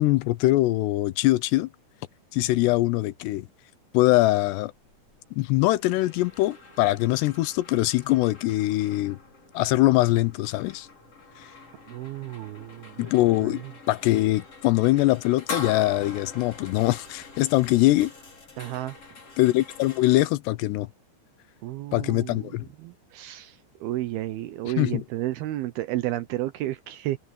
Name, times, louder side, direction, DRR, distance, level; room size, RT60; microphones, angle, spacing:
voice 1, 0.0-1.7 2.3-3.5 3.9-4.7 5.4-9.2 9.5-10.9 11.4-11.5 13.0-18.1 19.4-20.9 21.9-22.7 24.8-25.0, left 18 dB, 80° left, 2.7 m, -22 dB
sound 1, 4.7-20.3, left 3 dB, 35° left, 5.8 m, -44 dB
voice 2, 11.9-13.1 13.5-13.7 18.6-19.0 21.6-22.4 22.8-27.2, right 15 dB, 75° right, 2.4 m, -32 dB
open air
omnidirectional pair, 5.1 m